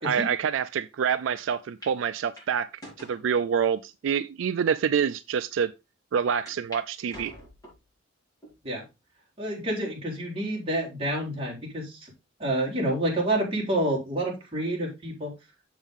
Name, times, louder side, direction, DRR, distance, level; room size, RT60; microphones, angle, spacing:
voice 1, 0.0-2.7 3.0-5.7 6.1-7.3, right 7 dB, 80° right, 0.4 m, -26 dB
sound 1, 1.4-1.5 1.8-2.0 2.4-3.2 3.9-4.0 4.7-4.8 5.1-5.2 6.5-6.8 7.1-7.9 8.4-8.9 9.4-9.5 10.6-11.1, equal, 20° left, 4.9 m, -46 dB
voice 2, 9.4-12.1 12.4-15.3, right 1 dB, 30° right, 3.6 m, -28 dB
7.2 x 7.1 x 3.5 m
head